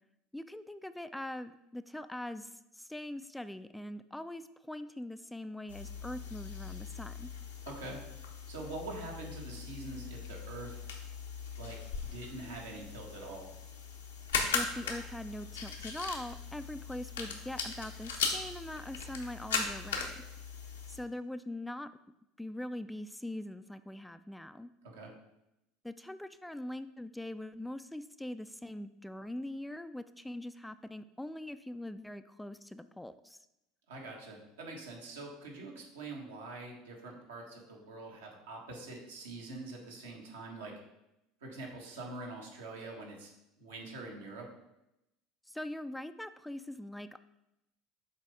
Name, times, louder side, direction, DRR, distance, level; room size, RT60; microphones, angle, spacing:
voice 1, 0.3-7.3 14.5-20.2 20.9-21.9 22.4-24.7 25.8-33.4 45.5-47.2, left 1 dB, 5° left, 12 dB, 0.3 m, -42 dB
sound 1, 5.7-21.0, left 5 dB, 85° left, 0.9 m, -39 dB
voice 2, 7.6-8.0 8.5-10.8 11.5-11.8 12.0-13.5 24.8-25.1 33.9-40.7 41.4-43.3 43.6-44.5, right 2 dB, 80° right, -1 dB, 1.5 m, -44 dB
7.3 x 4.1 x 3.6 m, 0.88 s
hypercardioid pair, 75°, 0 cm